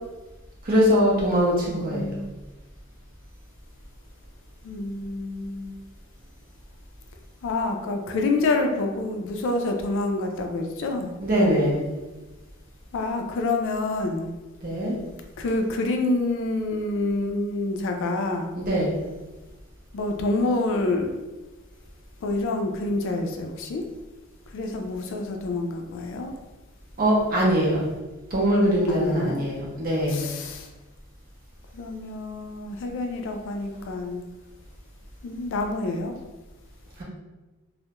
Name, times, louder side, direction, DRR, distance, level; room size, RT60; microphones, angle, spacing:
voice 1, 0.6-2.1 11.2-11.9 14.6-15.0 18.6-19.0 27.0-27.9 28.3-30.3, equal, 45° right, -3 dB, 0.6 m, -22 dB
voice 2, 1.8-2.3 4.6-5.8 7.4-11.1 12.9-14.3 15.4-18.5 19.9-21.3 22.2-23.8 24.5-26.3 28.9-29.4 30.1-30.7 31.7-34.2 35.2-36.1, left 2 dB, 65° left, 4 dB, 0.3 m, -27 dB
2.2 x 2.0 x 2.8 m, 1.1 s
head